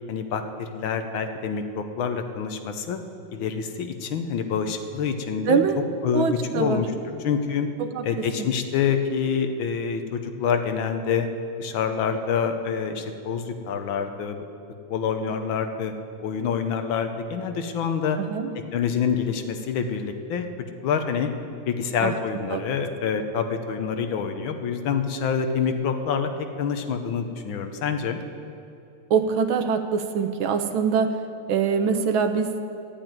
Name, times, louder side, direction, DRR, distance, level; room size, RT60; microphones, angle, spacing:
voice 1, 0.1-3.0 3.3-5.6 6.0-6.3 6.5-6.9 7.2-7.7 8.0-11.3 11.6-14.5 14.9-15.9 16.2-18.2 18.6-21.3 21.7-26.3 26.6-28.2, left 6 dB, 70° left, 7 dB, 1.6 m, -26 dB
voice 2, 5.5-5.8 6.1-6.8 7.8-8.3 18.2-18.5 22.0-22.1 22.5-22.6 29.1-31.1 31.5-32.5, right 6 dB, 75° right, 8 dB, 1.6 m, -23 dB
12.5 x 8.9 x 9.3 m, 2.7 s
omnidirectional pair, 2.3 m